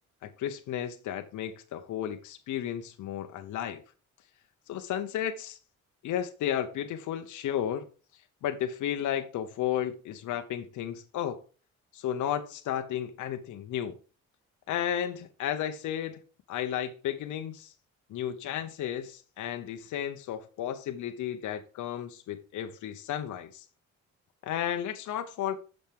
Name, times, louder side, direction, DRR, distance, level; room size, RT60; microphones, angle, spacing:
voice 1, 0.2-3.8 4.7-5.6 6.0-7.9 8.4-11.4 11.9-14.0 14.7-16.2 16.5-17.7 18.1-23.6 24.4-25.6, left 10 dB, 75° left, 0.9 m, -33 dB
7.3 x 6.4 x 3.6 m
cardioid pair, 90°, 30 cm